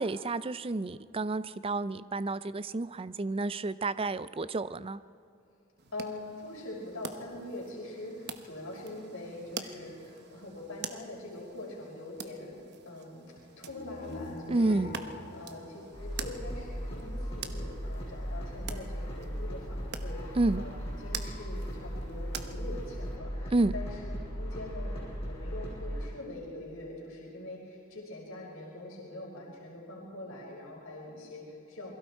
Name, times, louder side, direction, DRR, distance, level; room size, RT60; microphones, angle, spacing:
voice 1, 0.0-5.0 14.5-14.9 20.4-20.6 23.5-23.7, right 2 dB, 25° right, 15 dB, 0.5 m, -30 dB
sound 1, 5.8-23.2, right 7 dB, 55° right, 1.1 m, -46 dB
voice 2, 5.9-15.0 15.3-24.0 24.4-31.9, left 1 dB, 80° left, -3 dB, 5.3 m, -43 dB
sound 2, 13.7-16.8, left 1 dB, 65° left, 2.8 m, -45 dB
sound 3, 15.9-26.1, equal, 30° left, 5.8 m, -37 dB
28.0 x 22.0 x 4.5 m, 2.8 s
head